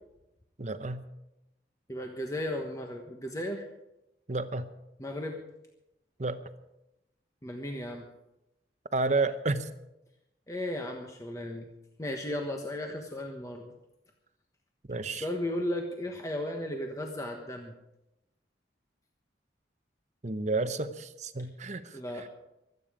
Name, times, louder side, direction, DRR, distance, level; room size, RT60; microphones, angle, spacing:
voice 1, 0.6-1.0 4.3-4.7 6.2-6.4 8.9-9.7 14.9-15.3 20.2-22.3, right 3 dB, 40° right, 10 dB, 0.9 m, -31 dB
voice 2, 1.9-3.6 5.0-5.4 7.4-8.0 10.5-11.7 12.0-13.7 15.2-17.7 21.9-22.3, left 1 dB, 20° left, 2 dB, 1.3 m, -35 dB
24.5 x 9.4 x 5.0 m, 0.91 s
head